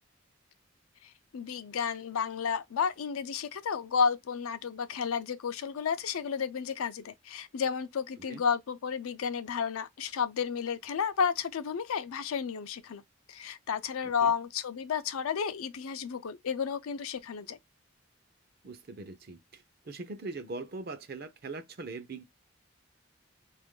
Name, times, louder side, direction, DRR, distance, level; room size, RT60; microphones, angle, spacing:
voice 1, 1.0-13.0 13.3-17.6, left 6 dB, 85° left, 0.4 m, -32 dB
voice 2, 18.6-22.2, right 3 dB, 45° right, 0.5 m, -41 dB
2.9 x 2.5 x 3.6 m
head